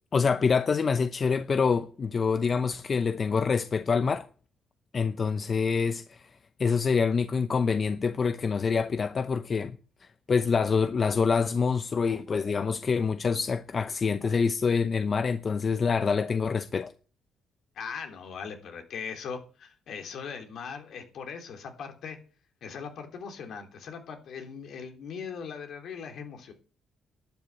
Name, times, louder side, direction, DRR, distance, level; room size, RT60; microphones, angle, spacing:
voice 1, 0.1-4.3 4.9-6.2 6.6-16.9, left 5 dB, 40° left, 0.7 m, -26 dB
voice 2, 17.7-22.2 22.6-26.5, left 6 dB, 70° left, 3.3 m, -39 dB
11.5 x 9.1 x 7.8 m
cardioid pair, 90°, 0 cm